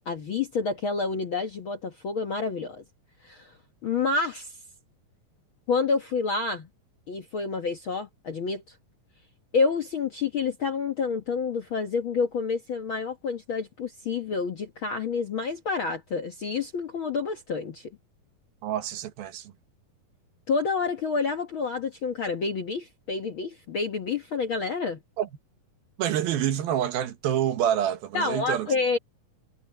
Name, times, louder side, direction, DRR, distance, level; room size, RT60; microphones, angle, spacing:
voice 1, 0.0-2.8 3.2-3.5 3.8-4.5 5.7-6.7 7.1-8.6 9.5-17.9 20.5-25.0 28.1-29.0, left 4 dB, 55° left, 1.4 m, -28 dB
voice 2, 18.6-19.5 25.2-25.3 26.0-28.7, right 10 dB, 85° right, 3.3 m, -27 dB
omnidirectional pair, 4.2 m